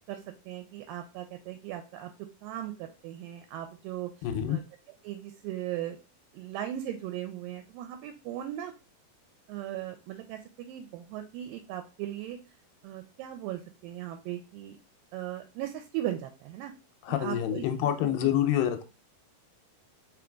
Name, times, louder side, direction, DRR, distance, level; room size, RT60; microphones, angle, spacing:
voice 1, 0.5-2.1 2.4-4.1 4.5-4.6 5.0-6.0 6.3-8.7 9.5-12.4 12.8-14.8 15.1-16.7 17.1-17.7 18.0-18.3, right 12 dB, 80° right, 7 dB, 2.1 m, -38 dB
voice 2, 4.2-4.6 17.1-18.8, left 11 dB, 80° left, 7 dB, 2.3 m, -27 dB
4.9 x 3.8 x 2.3 m, 0.32 s
omnidirectional pair, 4.1 m